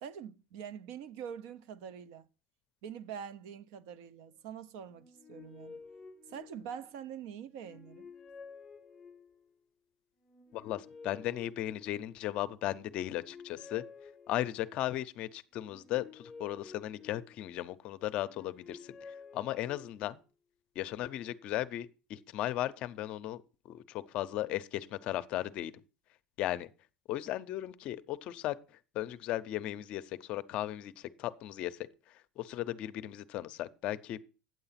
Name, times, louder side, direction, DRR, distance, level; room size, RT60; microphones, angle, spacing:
voice 1, 0.0-2.3 2.8-5.8 6.3-8.1, right 8 dB, 65° right, 0.6 m, -45 dB
sound 1, 4.9-7.0 7.5-9.5 10.2-12.3 12.8-14.8 15.5-17.7 18.2-20.2, left 5 dB, 10° left, 0.8 m, -52 dB
voice 2, 10.5-13.8 14.3-18.8 19.3-20.2 20.8-23.4 23.7-25.7 26.4-26.7 27.1-28.5 28.9-30.0 30.3-31.8 32.4-34.2, left 14 dB, 40° left, 0.6 m, -36 dB
9.4 x 7.9 x 5.7 m
cardioid pair, 175°, 3 cm